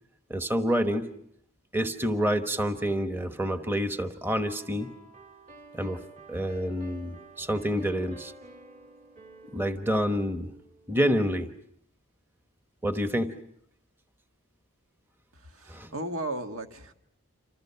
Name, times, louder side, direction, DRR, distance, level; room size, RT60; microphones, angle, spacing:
voice 1, 0.3-1.1 1.7-4.9 5.7-6.0 6.3-8.3 9.5-10.5 10.9-11.5 12.8-13.4 15.7-15.9, equal, 10° right, 7 dB, 1.1 m, -28 dB
sound 1, 4.3-11.1, right 3 dB, 35° right, 1.9 m, -51 dB
voice 2, 15.3-16.9, right 1 dB, 75° right, 5 dB, 1.9 m, -35 dB
28.5 x 27.0 x 5.7 m, 0.73 s
head